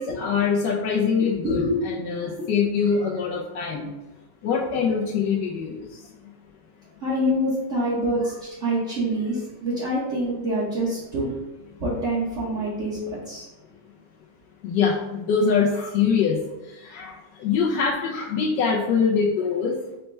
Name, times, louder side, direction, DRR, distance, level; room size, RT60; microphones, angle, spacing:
voice 1, 0.0-3.9 4.4-6.0 14.6-16.4 16.6-19.8, left 6 dB, 90° left, -4 dB, 1.3 m, -24 dB
voice 2, 1.2-1.9 2.1-2.5 7.0-11.3 11.8-13.0 13.3-13.5, equal, 50° right, -9 dB, 1.3 m, -26 dB
5.2 x 2.2 x 4.3 m, 1.0 s
omnidirectional pair, 1.8 m